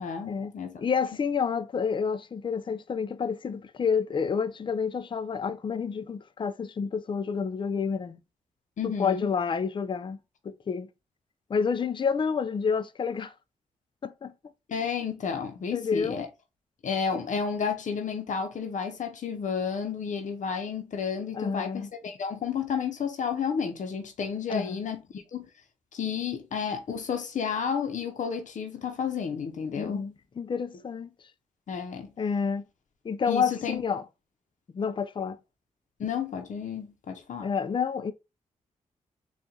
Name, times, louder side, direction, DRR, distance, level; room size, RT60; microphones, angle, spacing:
voice 1, 0.0-0.8 8.8-9.3 14.7-16.3 16.8-25.5 25.9-30.0 31.7-32.1 33.3-33.8 36.0-37.5, left 6 dB, 65° left, 0.8 m, -31 dB
voice 2, 0.8-8.2 8.8-10.2 10.4-10.9 11.5-13.3 14.0-14.3 15.7-16.2 21.3-21.9 24.5-24.8 29.8-31.1 32.2-32.6 33.0-34.0 34.7-35.4 37.4-38.1, left 6 dB, 35° left, 0.5 m, -29 dB
4.2 x 2.5 x 3.8 m
cardioid pair, 85°, 14 cm